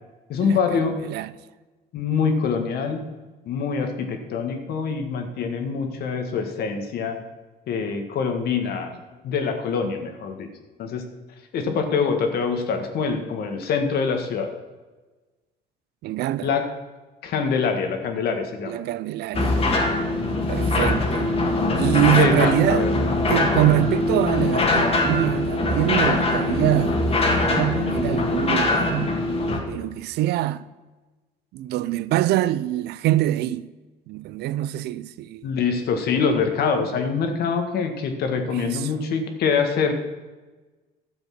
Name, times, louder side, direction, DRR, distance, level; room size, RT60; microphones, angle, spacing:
voice 1, 0.3-1.0 1.9-3.1 3.5-7.2 7.7-9.0 9.2-10.5 10.8-11.0 11.5-14.5 16.4-16.6 17.2-18.8 22.1-22.9 35.4-39.9, left 5 dB, 70° left, 1.7 m, -24 dB
voice 2, 16.0-16.5 18.7-19.6 20.5-21.3 21.8-22.9 23.3-29.2 29.7-30.7 31.5-33.7 34.1-35.5 38.5-38.9, right 14 dB, 75° right, 0.5 m, -24 dB
sound 1, 19.3-29.6, left 2 dB, 35° left, 1.9 m, -22 dB
12.0 x 7.2 x 5.9 m
cardioid pair, 110°, 17 cm